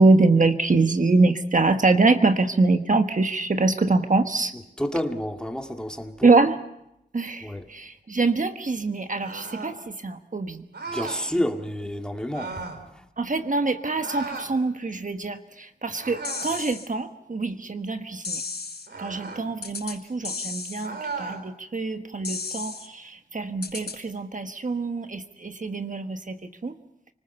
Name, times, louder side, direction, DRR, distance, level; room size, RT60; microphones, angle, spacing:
voice 1, 0.0-4.5 6.2-6.6 7.1-10.7 11.0-11.3 13.2-18.4 19.0-26.8, right 3 dB, 50° right, 1.3 m, -24 dB
voice 2, 4.8-6.3 7.4-7.6 10.9-12.5, left 1 dB, 5° left, 2.1 m, -29 dB
sound 1, 9.2-9.8 10.7-11.3 12.3-12.8 14.0-14.5 15.9-16.6 18.9-19.5 20.8-21.4, right 4 dB, 85° right, 3.7 m, -35 dB
sound 2, 16.2-16.9 18.2-18.9 19.6-20.0 20.2-20.9 22.2-22.9 23.6-24.0, left 4 dB, 75° left, 4.6 m, -33 dB
30.0 x 19.5 x 6.9 m
wide cardioid pair, 85°, 17 cm